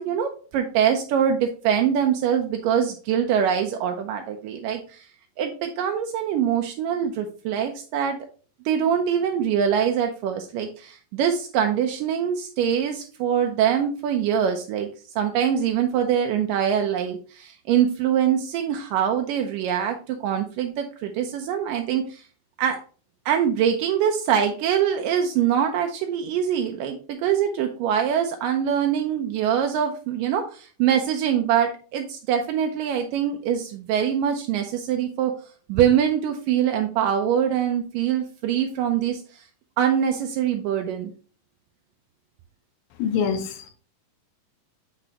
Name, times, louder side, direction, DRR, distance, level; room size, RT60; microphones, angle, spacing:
voice 1, 0.0-5.1 5.4-8.2 8.7-14.9 15.2-22.2 22.6-22.8 23.3-35.3 35.7-39.4 39.8-41.1, right 8 dB, 80° right, 4 dB, 2.2 m, -23 dB
voice 2, 43.0-43.7, left 7 dB, 90° left, 6 dB, 2.7 m, -25 dB
6.7 x 6.1 x 2.9 m, 0.39 s
omnidirectional pair, 4.0 m